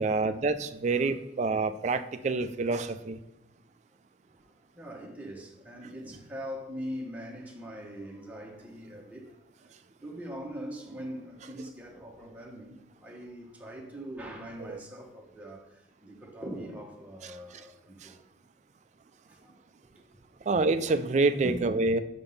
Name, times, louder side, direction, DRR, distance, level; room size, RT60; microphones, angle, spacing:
voice 1, 0.0-3.2 14.6-14.8 17.2-17.3 18.0-18.1 20.5-22.0, right 3 dB, 35° right, 0.3 m, -27 dB
voice 2, 4.4-9.4 10.0-18.2 19.3-19.9 21.4-21.7, equal, 10° right, 0.9 m, -42 dB
5.8 x 3.5 x 5.3 m
head